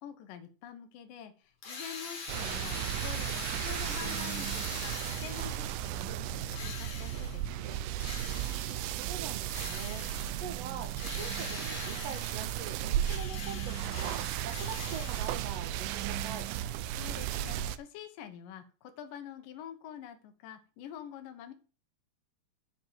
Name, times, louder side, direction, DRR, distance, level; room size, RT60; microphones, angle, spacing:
voice 1, 0.0-7.8 16.9-21.5, left 9 dB, 75° left, 7 dB, 2.6 m, -47 dB
Drill, 1.6-5.8 6.5-7.5 8.0-8.9 9.5-10.4 11.0-12.6 13.0-15.6, left 4 dB, 50° left, 3.4 m, -43 dB
sound 1, 2.3-17.8, right 12 dB, 80° right, 2.2 m, -35 dB
voice 2, 8.3-16.5, right 6 dB, 60° right, 5 dB, 2.0 m, -44 dB
7.5 x 5.3 x 7.3 m, 0.36 s
omnidirectional pair, 4.0 m